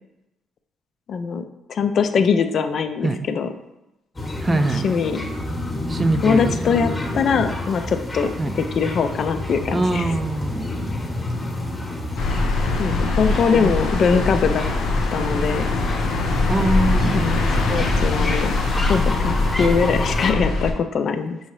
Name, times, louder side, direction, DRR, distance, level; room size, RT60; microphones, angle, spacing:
voice 1, 1.1-3.5 4.5-5.2 6.2-8.3 8.8-10.1 12.8-14.6 15.1-15.7 17.0-17.4 17.7-18.5 18.9-21.4, left 6 dB, 55° left, 8 dB, 0.4 m, -22 dB
sound 1, 4.2-20.3, left 1 dB, 20° left, 1.0 m, -29 dB
voice 2, 4.4-4.9 5.9-6.7 8.4-8.6 9.7-10.7 13.6-13.8 16.5-17.4, right 2 dB, 25° right, 9 dB, 0.4 m, -23 dB
sound 2, 12.2-20.7, left 3 dB, 80° left, 0.8 m, -22 dB
5.5 x 2.8 x 3.1 m, 0.92 s
supercardioid pair, 75°, 0 cm